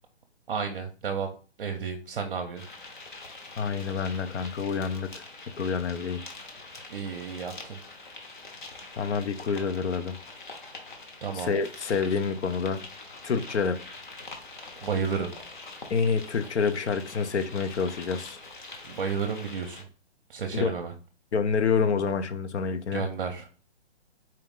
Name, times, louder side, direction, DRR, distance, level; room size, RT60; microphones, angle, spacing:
voice 1, 0.5-1.3 1.6-2.6 6.9-7.8 11.2-11.5 14.8-15.3 18.8-19.9 20.3-20.9 22.9-23.5, right 6 dB, 50° right, 0.6 m, -32 dB
sound 1, 2.6-19.8, left 3 dB, 45° left, 0.9 m, -44 dB
voice 2, 3.6-5.1 5.6-6.2 9.0-10.1 11.4-12.8 13.2-13.8 15.9-18.4 20.5-20.7 21.3-23.0, left 5 dB, 75° left, 0.7 m, -27 dB
4.4 x 2.4 x 3.5 m
hypercardioid pair, 170°, 34 cm